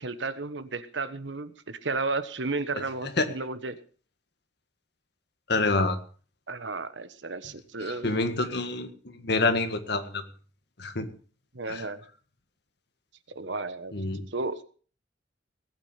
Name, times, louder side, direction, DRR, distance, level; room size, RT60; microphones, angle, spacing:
voice 1, 0.0-3.8 6.5-8.1 11.5-12.0 13.3-13.9 14.3-14.6, right 3 dB, 80° right, 12 dB, 1.2 m, -33 dB
voice 2, 5.5-6.0 8.0-8.9 9.2-10.2 10.8-11.1 11.7-11.8 13.9-14.2, left 3 dB, 65° left, 8 dB, 1.8 m, -26 dB
18.5 x 9.1 x 5.7 m, 0.41 s
head